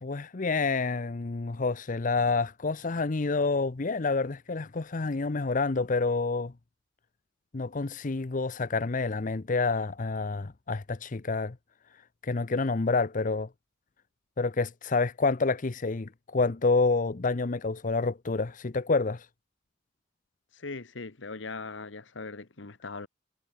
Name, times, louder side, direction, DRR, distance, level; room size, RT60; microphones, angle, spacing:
voice 1, 0.0-6.5 7.5-11.6 12.2-13.5 14.4-19.3, left 3 dB, 45° left, 0.7 m, -28 dB
voice 2, 20.5-23.1, left 3 dB, 75° left, 1.3 m, -40 dB
head